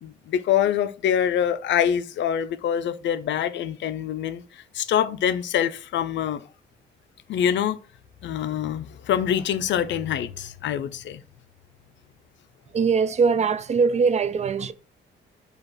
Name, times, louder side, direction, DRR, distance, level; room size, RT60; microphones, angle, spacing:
voice 1, 0.0-6.4 7.3-7.8 8.2-11.2, left 9 dB, 65° left, 0.5 m, -25 dB
voice 2, 12.7-14.7, right 5 dB, 35° right, 0.4 m, -21 dB
4.8 x 2.3 x 4.7 m
cardioid pair, 90°, 20 cm